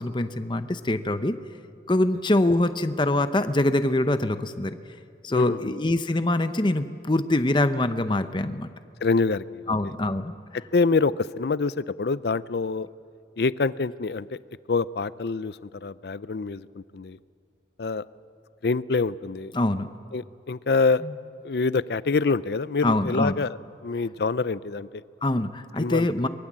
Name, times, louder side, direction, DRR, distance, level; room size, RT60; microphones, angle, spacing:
voice 1, 0.0-1.4 1.9-4.8 5.2-8.7 9.7-10.3 19.5-19.9 21.0-21.1 22.8-23.4 25.2-26.3, left 1 dB, 25° left, 10 dB, 0.8 m, -24 dB
voice 2, 5.3-5.7 9.0-9.7 10.7-12.9 13.4-14.4 14.7-17.2 17.8-18.0 18.6-19.5 20.1-21.0 21.4-23.6 23.8-25.0 25.8-26.1, left 4 dB, 60° left, 17 dB, 0.5 m, -26 dB
23.5 x 21.5 x 7.5 m, 2.3 s
head